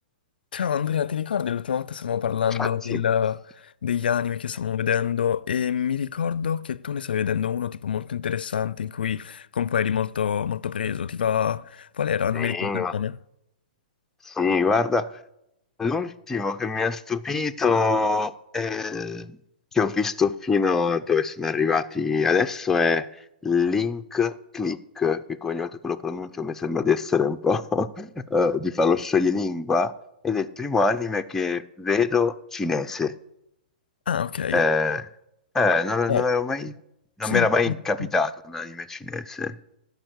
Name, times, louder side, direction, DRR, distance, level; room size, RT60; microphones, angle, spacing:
voice 1, 0.5-13.2 34.1-34.6 36.1-36.3 37.2-38.1, left 8 dB, 75° left, 0.4 m, -26 dB
voice 2, 2.6-3.0 12.3-12.9 14.3-15.1 15.8-19.4 19.7-23.1 23.4-29.9 30.2-33.1 34.5-35.1 35.5-36.8 37.2-39.5, left 4 dB, 10° left, 0.5 m, -24 dB
12.0 x 5.3 x 7.9 m
hypercardioid pair, 125°, 5 cm